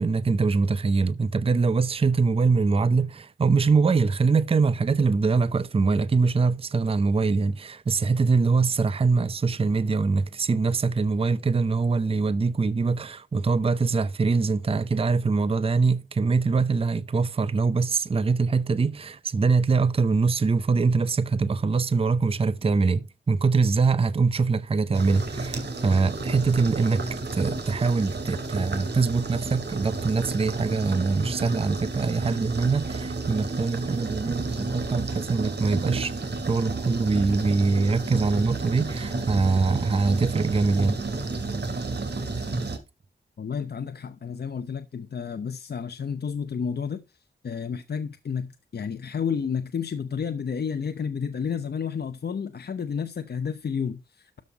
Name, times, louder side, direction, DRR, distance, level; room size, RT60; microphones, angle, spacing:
voice 1, 0.0-36.1 36.5-41.0, right 4 dB, 30° right, 0.5 m, -23 dB
sound 1, 24.9-42.8, right 3 dB, 60° right, 2.5 m, -31 dB
voice 2, 43.4-47.0 47.4-54.3, left 6 dB, 55° left, 0.8 m, -31 dB
13.0 x 5.5 x 4.7 m
wide cardioid pair, 165°, 20 cm